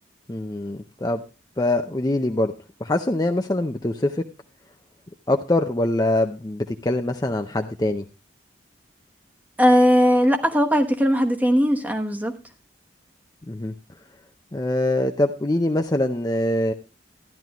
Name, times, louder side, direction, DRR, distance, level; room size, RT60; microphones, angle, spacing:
voice 1, 0.3-1.2 1.6-2.5 2.8-4.2 5.3-8.0 13.5-13.7 14.5-16.7, left 1 dB, 20° left, 0.5 m, -23 dB
voice 2, 9.6-12.3, equal, 10° right, 1.1 m, -18 dB
14.0 x 11.0 x 3.0 m
head